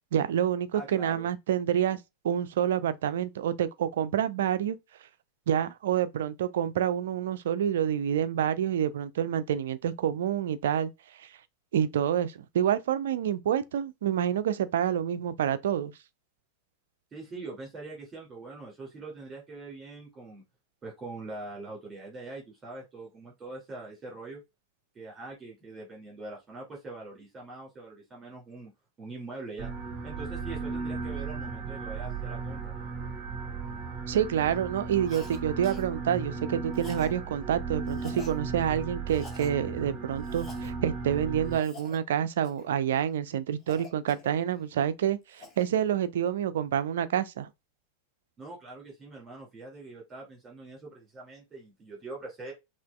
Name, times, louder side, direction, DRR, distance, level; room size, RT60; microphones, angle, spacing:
voice 1, 0.1-2.0 2.2-4.8 5.5-10.9 11.2-11.3 11.7-15.9 34.1-47.5, right 9 dB, 60° right, 0.4 m, -28 dB
voice 2, 0.7-1.3 17.1-20.4 20.8-24.4 24.9-28.7 29.0-29.7 30.0-32.7 48.4-52.5, right 2 dB, 20° right, 2.3 m, -43 dB
sound 1, 29.6-41.6, right 4 dB, 35° right, 0.8 m, -36 dB
Cough, 35.1-35.4 35.6-35.9 36.7-37.2 37.9-38.4 39.1-39.5 40.2-40.7 41.5-42.0 42.4-42.7 43.7-44.6 45.1-45.7, left 2 dB, 20° left, 1.5 m, -47 dB
5.8 x 2.5 x 2.3 m
figure-of-eight pair, 90°, 0 cm